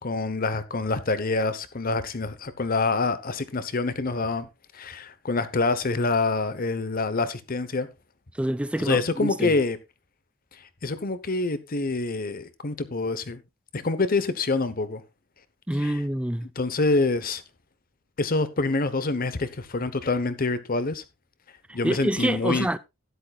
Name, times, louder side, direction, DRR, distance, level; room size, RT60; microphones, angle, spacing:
voice 1, 0.0-4.5 4.7-7.9 8.8-9.8 10.8-13.4 13.7-15.0 15.8-16.0 16.6-17.4 18.2-21.0 21.7-22.7, left 3 dB, 45° left, 0.9 m, -26 dB
voice 2, 8.4-9.5 15.7-16.5 21.7-22.8, right 1 dB, 5° right, 0.5 m, -27 dB
12.5 x 10.5 x 2.3 m
head